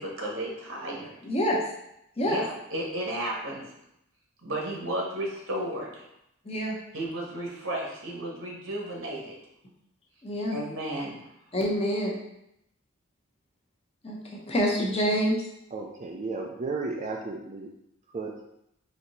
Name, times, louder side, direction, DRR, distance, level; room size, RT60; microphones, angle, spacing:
voice 1, 0.0-1.2 2.2-3.6 4.4-6.0 6.9-9.4 10.5-11.3, right 1 dB, 65° right, -1 dB, 1.1 m, -33 dB
voice 2, 1.2-1.6 2.2-2.4 6.4-6.8 10.2-10.6 11.5-12.2 14.0-15.5, equal, 30° left, -2 dB, 0.8 m, -27 dB
voice 3, 15.7-17.7 18.1-18.4, right 3 dB, 35° right, 0 dB, 0.4 m, -34 dB
4.3 x 2.8 x 4.0 m, 0.81 s
head